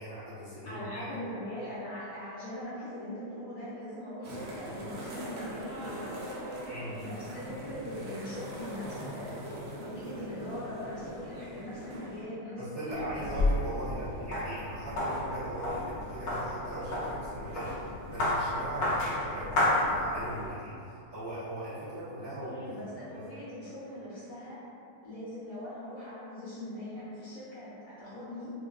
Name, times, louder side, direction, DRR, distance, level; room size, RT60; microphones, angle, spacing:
voice 1, 0.0-1.1 6.6-7.0 12.5-22.5 23.1-23.3, right 1 dB, 40° right, -16 dB, 1.2 m, -39 dB
voice 2, 0.7-6.1 7.0-9.3 9.8-13.4 22.4-24.6 25.0-28.5, left 1 dB, 60° left, -11 dB, 1.1 m, -41 dB
sound 1, 4.2-12.2, right 1 dB, 70° right, 0.7 m, -41 dB
sound 2, 12.9-20.5, left 1 dB, 85° left, 0.5 m, -31 dB
3.8 x 2.3 x 2.3 m, 2.6 s
omnidirectional pair, 1.8 m